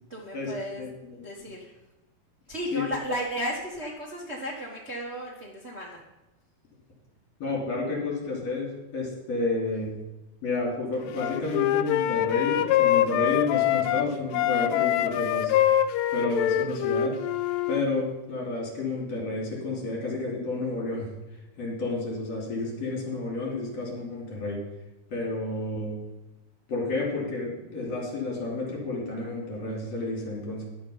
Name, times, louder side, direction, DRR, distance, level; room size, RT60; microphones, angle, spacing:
voice 1, 0.1-0.8 1.2-1.7 2.5-6.0, equal, 70° right, -3 dB, 0.6 m, -34 dB
voice 2, 0.8-1.5 2.7-2.9 7.4-9.9 10.4-15.7 16.1-17.2 17.7-21.1 21.6-24.6 25.1-26.0 26.7-30.7, left 3 dB, 45° left, -3 dB, 3.9 m, -30 dB
Wind instrument woodwind instrument, 11.2-14.1 14.3-17.8, left 12 dB, 80° left, 2.0 m, -24 dB
12.0 x 7.3 x 5.7 m, 1.0 s
omnidirectional pair, 4.1 m